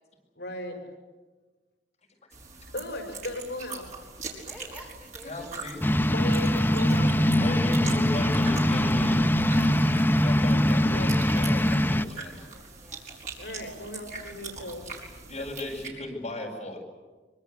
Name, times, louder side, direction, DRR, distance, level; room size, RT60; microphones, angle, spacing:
voice 1, 0.4-0.8 2.7-3.9 6.0-8.0 10.9-11.1 13.4-14.9, left 1 dB, 65° left, 4 dB, 5.4 m, -37 dB
sound 1, 2.3-15.9, right 4 dB, 45° right, 5.3 m, -42 dB
voice 2, 4.4-5.5 8.4-10.7 11.2-13.0, equal, 5° right, -1 dB, 5.3 m, -48 dB
voice 3, 5.2-5.8 7.4-9.2 10.2-12.3 15.3-16.8, left 2 dB, 35° left, -1 dB, 7.2 m, -36 dB
sound 2, 5.8-12.0, equal, 10° left, 0.7 m, -22 dB
24.5 x 24.5 x 8.4 m, 1.3 s
head